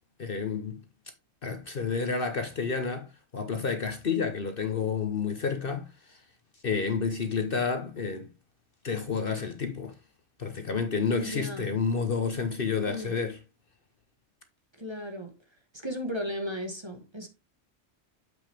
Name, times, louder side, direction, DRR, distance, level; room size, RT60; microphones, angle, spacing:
voice 1, 0.2-0.8 1.4-3.1 3.3-6.2 6.6-8.3 8.8-10.0 10.4-13.4, left 5 dB, 50° left, 1.0 m, -30 dB
voice 2, 11.2-11.7 12.9-13.2 14.8-15.4 15.8-17.3, equal, 20° right, 1.4 m, -35 dB
7.6 x 6.0 x 3.4 m
omnidirectional pair, 1.3 m